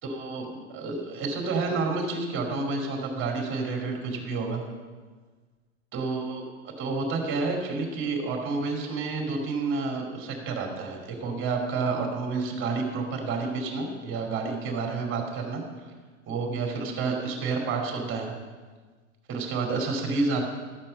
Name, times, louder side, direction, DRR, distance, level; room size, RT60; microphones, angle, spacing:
voice 1, 0.0-4.6 5.9-15.6 16.3-18.3 19.3-20.4, right 4 dB, 30° right, 2 dB, 2.7 m, -29 dB
13.0 x 8.9 x 5.4 m, 1.4 s
figure-of-eight pair, 90°, 43 cm